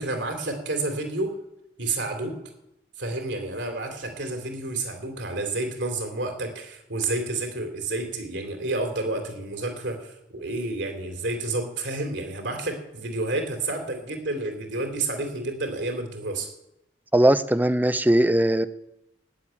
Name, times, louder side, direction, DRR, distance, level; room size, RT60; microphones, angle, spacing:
voice 1, 0.0-1.3 1.8-2.4 3.0-16.5, right 2 dB, 70° right, 5 dB, 3.1 m, -30 dB
voice 2, 17.1-18.7, right 1 dB, 10° right, 13 dB, 0.6 m, -19 dB
15.0 x 10.5 x 8.9 m, 0.86 s
head